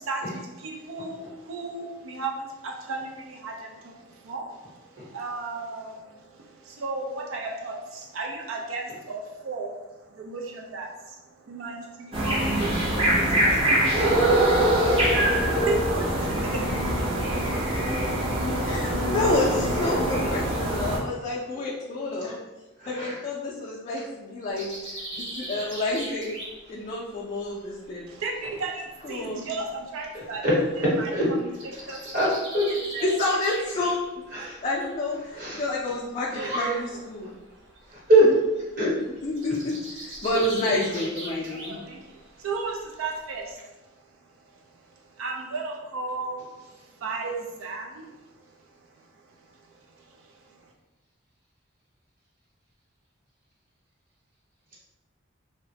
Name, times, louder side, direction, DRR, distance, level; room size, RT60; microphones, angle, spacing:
voice 1, 0.0-17.5 28.1-30.4 30.8-33.1 34.4-34.5 36.4-36.8 37.2-37.3 41.2-50.7, right 3 dB, 90° right, 0 dB, 0.4 m, -36 dB
sound 1, 12.1-21.0, right 1 dB, 25° right, 0.5 m, -23 dB
voice 2, 18.7-22.4 22.9-26.4 26.7-28.1 29.0-29.4 33.0-34.3 34.6-37.3 39.2-41.8, left 2 dB, 35° left, -6 dB, 0.3 m, -29 dB
sound 2, 24.5-28.8 29.1-35.3 35.6-43.5, right 1 dB, 70° right, 0.9 m, -40 dB
voice 3, 30.4-31.3 32.1-32.3 32.5-32.6 34.3-34.6 35.4-35.6 36.3-36.7 38.1-38.3 38.8-38.9, right 1 dB, 45° right, -7 dB, 0.9 m, -21 dB
2.9 x 2.1 x 2.7 m, 1.1 s
head